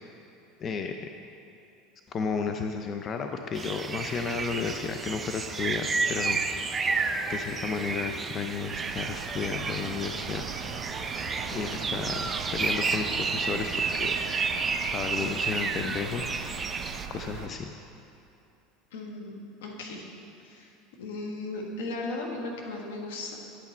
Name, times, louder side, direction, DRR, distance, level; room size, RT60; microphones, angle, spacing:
voice 1, 0.6-1.1 2.1-6.4 7.3-10.7 11.5-14.3 14.9-16.8 17.1-17.7, left 5 dB, 35° left, 5 dB, 0.4 m, -33 dB
sound 1, 3.5-17.1, right 4 dB, 25° right, 0.4 m, -31 dB
sound 2, 8.7-17.5, right 6 dB, 60° right, 0.9 m, -40 dB
voice 2, 18.9-20.0 20.4-20.7 21.0-23.4, left 2 dB, 80° left, 0 dB, 1.2 m, -36 dB
9.9 x 5.8 x 4.3 m, 2.8 s
hypercardioid pair, 95°, 0 cm